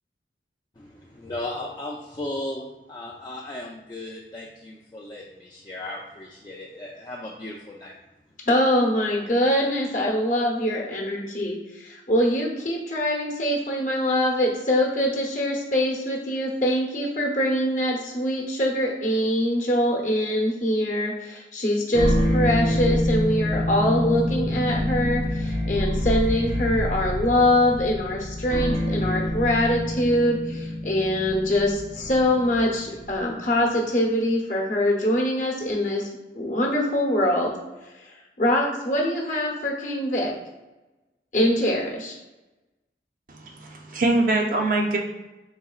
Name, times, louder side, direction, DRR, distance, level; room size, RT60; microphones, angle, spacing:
voice 1, 0.8-8.0, left 1 dB, 20° left, -3 dB, 0.3 m, -36 dB
voice 2, 8.5-36.1 36.3-37.6 38.0-40.4 41.3-42.1, left 1 dB, 45° left, -1 dB, 0.9 m, -23 dB
sound 1, 21.9-33.3, left 1 dB, 75° right, 0.8 m, -26 dB
voice 3, 43.3-45.0, right 2 dB, 50° right, 1 dB, 0.5 m, -23 dB
4.1 x 3.7 x 2.4 m, 1.1 s
head